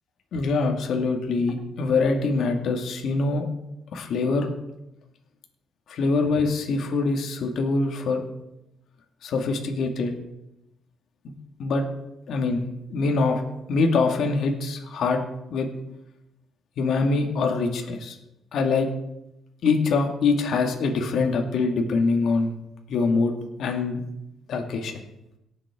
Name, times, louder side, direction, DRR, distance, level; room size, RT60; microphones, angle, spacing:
voice 1, 0.3-3.5 3.9-4.5 5.9-8.3 9.2-10.1 11.6-11.8 12.3-13.4 13.7-15.2 15.5-15.7 16.8-18.2 18.5-18.9 19.6-22.5 22.9-23.3 23.6-24.0 24.5-25.0, left 4 dB, 70° left, 3 dB, 1.9 m, -24 dB
18.0 x 7.6 x 3.6 m, 0.86 s
cardioid pair, 90°, 0 cm